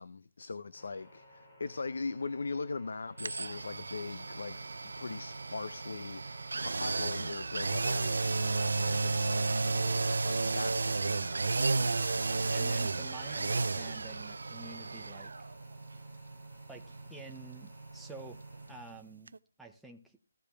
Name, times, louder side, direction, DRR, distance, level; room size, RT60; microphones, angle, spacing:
voice 1, 0.0-4.6 5.0-12.0, left 4 dB, 65° left, 0.4 m, -41 dB
sound 1, 0.7-18.8, left 1 dB, 25° left, 2.1 m, -59 dB
sound 2, 3.2-19.0 19.3-19.4, right 3 dB, 80° right, 0.5 m, -33 dB
voice 2, 12.0-15.5 16.7-18.4 18.7-19.3 19.6-20.2, right 3 dB, ahead, 0.4 m, -50 dB
15.0 x 5.0 x 3.4 m
hypercardioid pair, 175°, 0 cm